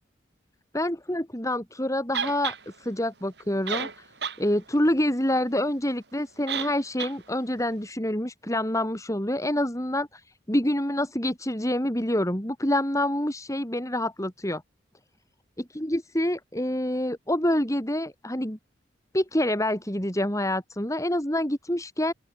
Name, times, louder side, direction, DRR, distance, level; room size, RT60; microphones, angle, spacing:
voice 1, 0.7-4.0 4.4-10.2 10.5-14.6 15.7-18.6 19.1-22.1, left 1 dB, 20° left, 6.2 m, -27 dB
sound 1, 2.1-2.6 3.4-3.5 3.7-4.4 4.8-4.9 6.5-6.7 7.0-7.1, right 7 dB, 65° right, 7.8 m, -30 dB
open air
head